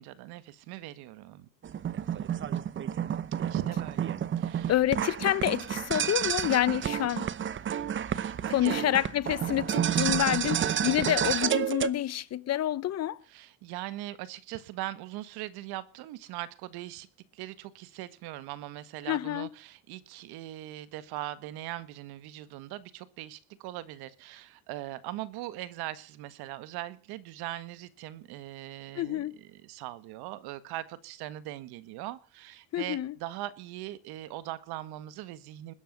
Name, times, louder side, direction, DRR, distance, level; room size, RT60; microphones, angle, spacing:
voice 1, 0.0-1.5 3.5-4.7 8.1-8.8 13.3-35.7, right 15 dB, 75° right, 1.8 m, -40 dB
sound 1, 1.6-11.9, right 9 dB, 30° right, 0.9 m, -30 dB
voice 2, 4.7-7.3 8.5-13.2 19.1-19.5 29.0-29.4 32.7-33.1, left 12 dB, 40° left, 0.9 m, -28 dB
20.5 x 10.5 x 6.7 m
cardioid pair, 130°, 39 cm